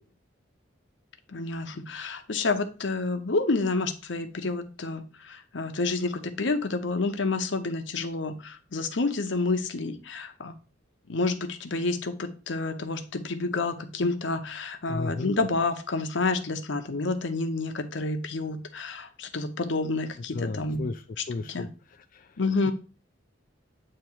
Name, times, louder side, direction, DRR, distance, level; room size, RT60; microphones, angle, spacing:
voice 1, 1.3-10.5 11.1-20.9 21.2-21.7 22.4-22.7, left 3 dB, 75° left, 8 dB, 0.8 m, -29 dB
voice 2, 14.9-15.3 20.3-21.0 21.3-21.7 22.1-22.3, left 3 dB, 45° left, 6 dB, 0.3 m, -33 dB
8.5 x 2.9 x 4.5 m, 0.34 s
head